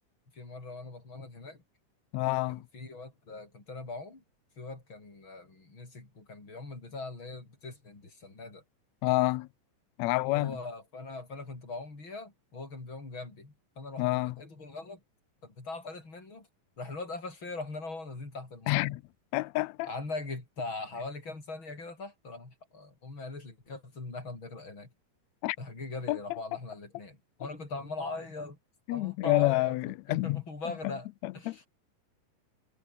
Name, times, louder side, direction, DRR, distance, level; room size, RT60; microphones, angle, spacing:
voice 1, 0.3-1.6 2.5-4.2 4.6-8.6 10.2-15.0 15.4-16.5 16.8-19.0 19.8-24.9 25.6-28.6 28.9-31.1 31.3-31.7, left 3 dB, 35° left, 7.0 m, -41 dB
voice 2, 2.1-2.6 9.0-9.5 10.0-10.5 14.0-14.3 18.7-19.0 19.3-19.9 25.4-25.6 26.1-26.2 28.9-30.4 31.2-31.6, left 20 dB, 90° left, 1.6 m, -28 dB
omnidirectional pair, 3.8 m